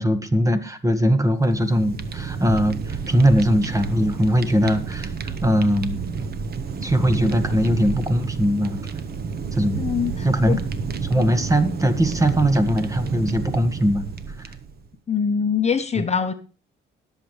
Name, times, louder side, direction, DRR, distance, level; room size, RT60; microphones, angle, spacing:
voice 1, 0.0-6.0 6.8-8.8 9.5-9.9 10.2-10.6 11.0-14.0, equal, 15° right, 1.6 m, -20 dB
Fire, 1.3-14.9, right 5 dB, 50° right, 1.2 m, -30 dB
voice 2, 9.8-10.6 11.1-11.4 15.1-16.3, left 6 dB, 35° left, 0.9 m, -24 dB
21.0 x 7.4 x 3.2 m
cardioid pair, 90°, 20 cm